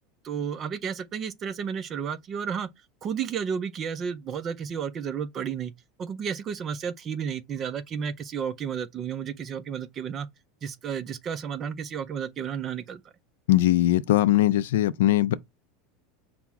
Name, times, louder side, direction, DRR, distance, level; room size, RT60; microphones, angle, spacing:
voice 1, 0.2-2.7 3.0-5.7 6.0-10.3 10.6-13.0, right 7 dB, 25° right, 0.4 m, -32 dB
voice 2, 13.5-15.3, left 14 dB, 90° left, 0.4 m, -20 dB
5.8 x 2.0 x 3.5 m
supercardioid pair, 165°, 0 cm